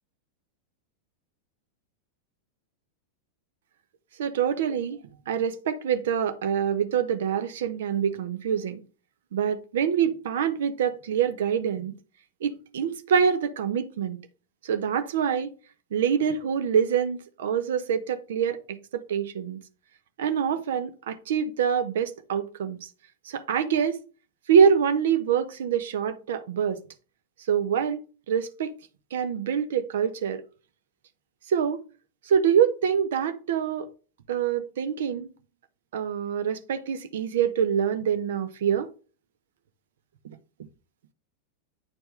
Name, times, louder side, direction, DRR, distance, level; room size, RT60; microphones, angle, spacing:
voice 1, 4.2-8.8 9.3-12.0 12.4-14.2 14.6-15.5 15.9-18.8 19.1-19.6 20.2-22.8 23.3-24.0 24.5-26.8 27.5-28.7 29.1-30.4 31.5-31.8 32.3-33.9 34.3-35.3 35.9-38.9, right 7 dB, 60° right, 0.8 m, -25 dB
8.9 x 4.4 x 3.2 m
figure-of-eight pair, 90°, 0 cm